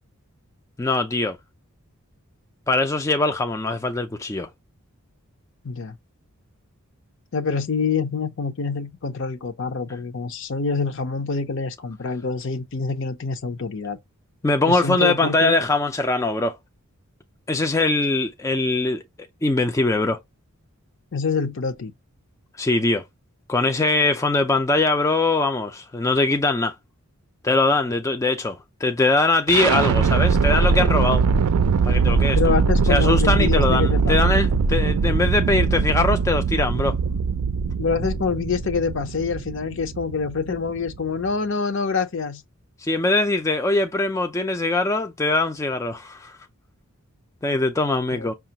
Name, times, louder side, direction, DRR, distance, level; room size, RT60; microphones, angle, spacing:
voice 1, 0.8-1.4 2.7-4.5 14.4-16.5 17.5-19.0 19.4-20.2 22.6-23.0 23.5-26.8 27.4-31.3 31.8-32.4 32.9-36.9 42.8-46.4 47.4-48.3, left 2 dB, 15° left, 0.3 m, -22 dB
voice 2, 5.6-6.0 7.3-14.0 14.7-15.5 21.1-21.9 32.3-34.4 37.8-42.4 48.1-48.3, left 5 dB, 55° left, 0.6 m, -26 dB
sound 1, 29.5-41.3, right 4 dB, 90° right, 0.4 m, -21 dB
5.8 x 2.3 x 2.7 m
head